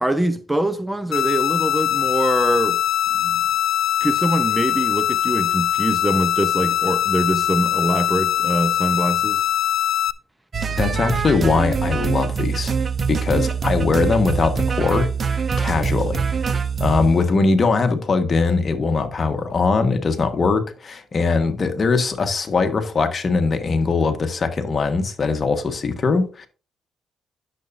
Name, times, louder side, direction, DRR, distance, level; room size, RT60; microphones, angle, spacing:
voice 1, 0.0-2.8 3.2-3.4 4.0-9.4, right 1 dB, 10° right, 0.8 m, -23 dB
sound 1, 1.1-10.1, left 11 dB, 70° left, 0.5 m, -21 dB
sound 2, 10.5-17.1, right 5 dB, 40° right, 0.8 m, -23 dB
voice 2, 10.7-12.7 13.1-16.2 16.8-26.5, left 4 dB, 40° left, 1.4 m, -21 dB
10.5 x 7.0 x 2.6 m
cardioid pair, 90°, 0 cm